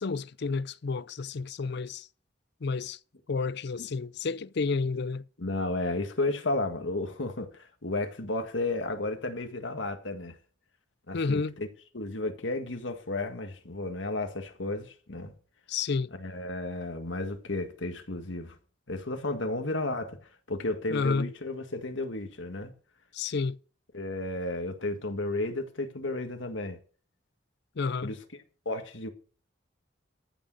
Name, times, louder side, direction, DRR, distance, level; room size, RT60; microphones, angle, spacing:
voice 1, 0.0-2.1 2.6-3.0 3.3-5.2 11.1-11.6 15.7-16.1 20.9-21.3 23.1-23.6 27.8-28.1, left 4 dB, 60° left, 0.5 m, -30 dB
voice 2, 5.4-10.3 11.1-11.7 11.9-15.3 16.2-18.6 18.9-20.2 20.5-22.7 23.9-26.8 28.0-28.2 28.7-29.1, left 2 dB, 80° left, 1.8 m, -33 dB
14.0 x 6.5 x 7.6 m
head